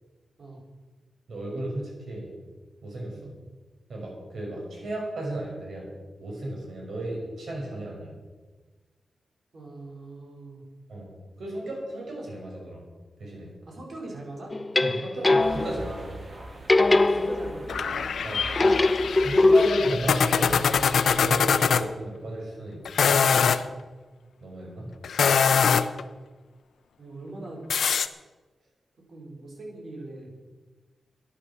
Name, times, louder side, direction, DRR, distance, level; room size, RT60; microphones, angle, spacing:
voice 1, 1.3-2.3 2.8-3.2 3.9-5.9 6.2-8.1 10.9-11.1 11.4-12.8 13.2-13.5 14.8-16.1 18.2-18.5 19.2-20.5 20.8-23.5 24.4-24.9, right 1 dB, 75° right, -1 dB, 5.5 m, -34 dB
voice 2, 9.5-10.6 13.7-14.6 16.9-18.1 27.0-28.2 29.1-30.3, right 2 dB, 55° right, -1 dB, 4.8 m, -41 dB
sound 1, 14.5-15.9 16.7-17.8 18.6-20.0, left 2 dB, 25° left, 0.4 m, -21 dB
sound 2, 15.4-21.4, right 2 dB, 35° right, 2.1 m, -42 dB
sound 3, 17.7-21.8 22.8-23.6 25.0-26.0 27.7-28.1, left 6 dB, 85° left, 0.7 m, -23 dB
14.0 x 11.0 x 7.0 m, 1.3 s
wide cardioid pair, 115°, 0 cm